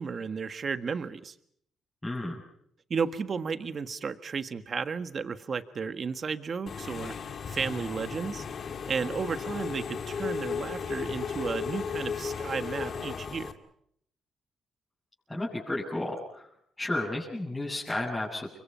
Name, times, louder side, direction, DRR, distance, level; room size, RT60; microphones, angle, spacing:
voice 1, 0.0-1.3 2.9-7.1 7.5-8.4 8.9-13.5, right 5 dB, 45° right, 10 dB, 1.6 m, -33 dB
voice 2, 2.0-2.4 15.3-16.5 16.8-18.6, left 2 dB, 10° left, -7 dB, 8.0 m, -32 dB
Engine / Mechanisms, 6.7-13.5, left 6 dB, 50° left, 2.2 m, -35 dB
30.0 x 24.5 x 5.7 m, 0.70 s
cardioid pair, 95°, 0 cm